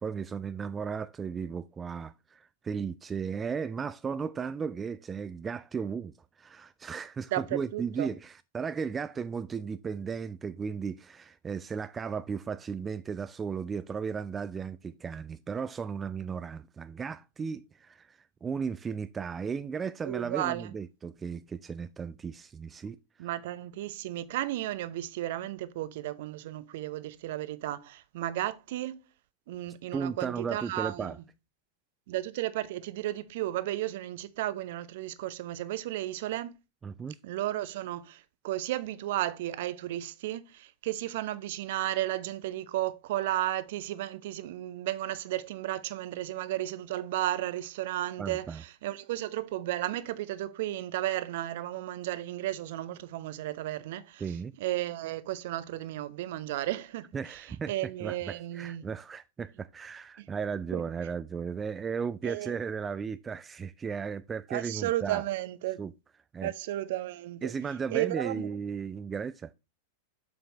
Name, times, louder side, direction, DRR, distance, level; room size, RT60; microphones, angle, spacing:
voice 1, 0.0-23.3 29.9-31.2 36.8-37.2 48.2-48.6 54.2-54.5 57.1-65.2 65.8-65.9 66.3-66.5 67.4-69.5, right 6 dB, 20° right, 0.3 m, -35 dB
voice 2, 7.3-8.1 20.0-20.7 23.2-28.9 29.5-31.1 32.1-36.5 37.2-54.2 54.6-57.4 57.7-58.9 60.7-60.8 62.2-62.5 64.5-65.8 66.4-67.5 67.9-68.5, right 14 dB, 55° right, 0.7 m, -33 dB
7.0 x 7.0 x 2.9 m
figure-of-eight pair, 90°, 0 cm